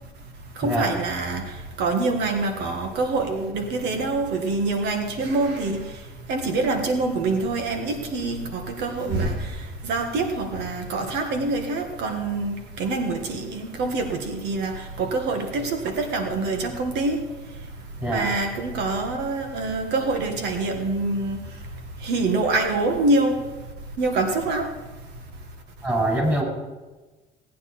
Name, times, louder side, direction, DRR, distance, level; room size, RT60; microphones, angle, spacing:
voice 1, 0.6-1.4 1.8-5.8 6.3-9.4 9.8-17.2 18.1-21.4 22.0-23.4 24.0-24.7, right 3 dB, 85° right, 5 dB, 1.6 m, -25 dB
voice 2, 25.8-26.4, right 1 dB, 20° right, 0 dB, 5.4 m, -23 dB
17.5 x 9.4 x 4.3 m, 1.2 s
cardioid pair, 110°, 17 cm